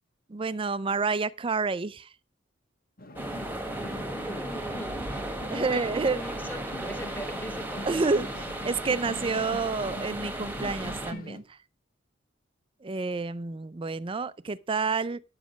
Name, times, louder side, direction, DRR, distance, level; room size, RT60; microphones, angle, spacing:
voice 1, 0.3-2.1 5.5-6.2 7.9-8.3 8.6-11.4 12.8-15.2, right 4 dB, 25° right, 0.5 m, -29 dB
sound 1, 3.0-11.4, left 1 dB, 50° left, 1.5 m, -43 dB
sound 2, 3.2-11.1, right 1 dB, 10° right, 1.4 m, -36 dB
voice 2, 3.7-8.1, equal, 10° left, 1.6 m, -40 dB
9.8 x 7.3 x 5.0 m
head